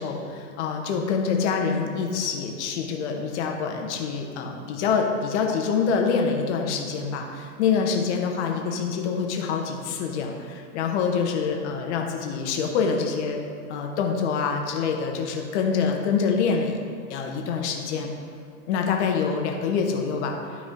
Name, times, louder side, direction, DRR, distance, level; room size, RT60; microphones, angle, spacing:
voice 1, 0.0-13.4 13.7-16.8 17.1-18.1 18.7-20.3, left 5 dB, 50° left, 2 dB, 1.3 m, -26 dB
12.0 x 5.0 x 3.7 m, 2.5 s
hypercardioid pair, 115°, 46 cm